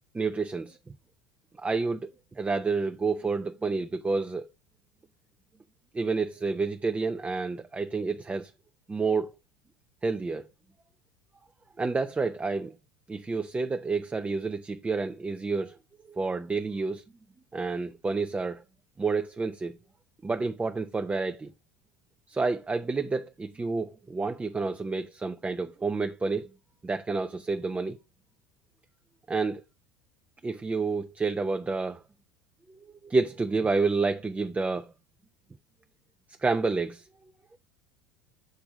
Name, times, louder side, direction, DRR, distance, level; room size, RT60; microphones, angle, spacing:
voice 1, 0.1-0.8 1.6-2.1 2.4-4.5 5.9-8.5 8.9-9.3 10.0-10.4 11.8-12.7 13.1-15.8 16.1-17.0 17.5-18.6 19.0-19.7 20.2-21.5 22.3-26.5 26.8-28.0 29.3-29.6 30.4-32.0 33.0-34.9 36.4-37.0, right 4 dB, 15° right, 0.5 m, -29 dB
7.7 x 3.5 x 4.9 m
figure-of-eight pair, 75°, 11 cm